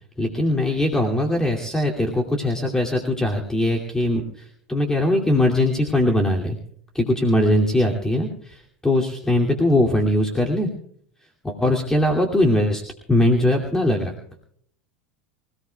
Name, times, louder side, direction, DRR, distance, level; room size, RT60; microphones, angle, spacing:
voice 1, 0.2-6.6 6.9-10.7 11.4-12.8 13.1-14.1, left 1 dB, 10° left, 1 dB, 2.6 m, -21 dB
26.0 x 17.5 x 2.3 m, 0.65 s
hypercardioid pair, 90°, 7 cm